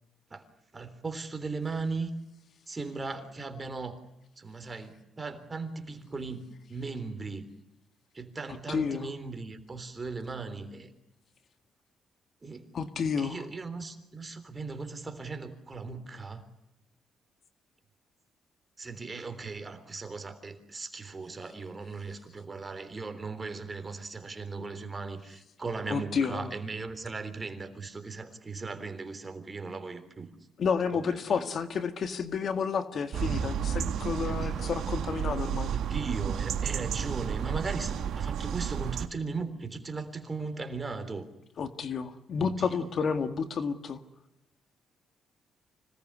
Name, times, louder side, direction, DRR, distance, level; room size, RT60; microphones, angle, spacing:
voice 1, 0.7-2.1 2.7-4.0 4.4-7.5 8.1-10.9 12.4-12.6 13.2-16.4 18.8-30.3 30.9-31.5 35.7-41.3 42.4-42.9, right 4 dB, 25° right, 9 dB, 3.5 m, -38 dB
voice 2, 8.7-9.1 12.7-13.5 25.9-26.5 30.6-35.7 41.6-44.0, left 6 dB, 55° left, 9 dB, 1.9 m, -30 dB
sound 1, 33.1-39.1, right 8 dB, 75° right, 1.7 m, -31 dB
25.5 x 19.0 x 9.7 m, 0.91 s
cardioid pair, 90°, 0 cm